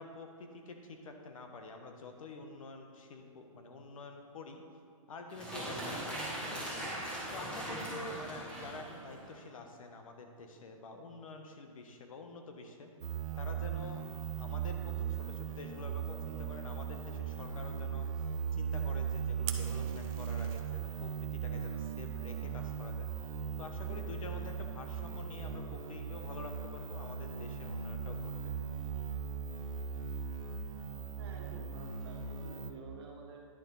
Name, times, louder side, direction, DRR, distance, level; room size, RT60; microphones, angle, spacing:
voice 1, 0.0-4.6 5.1-6.9 7.3-12.9 13.4-14.0 14.4-18.1 18.5-23.1 23.6-28.5, left 3 dB, 75° left, 4 dB, 1.3 m, -48 dB
sound 1, 5.3-9.4, right 1 dB, 5° left, 1.7 m, -40 dB
sound 2, 13.0-32.7, right 7 dB, 70° right, 0.9 m, -38 dB
Fire, 19.4-20.6, right 11 dB, 15° right, 0.3 m, -43 dB
voice 2, 31.2-33.4, right 4 dB, 45° right, 0 dB, 1.6 m, -50 dB
10.5 x 6.9 x 4.0 m, 2.3 s
hypercardioid pair, 160°, 18 cm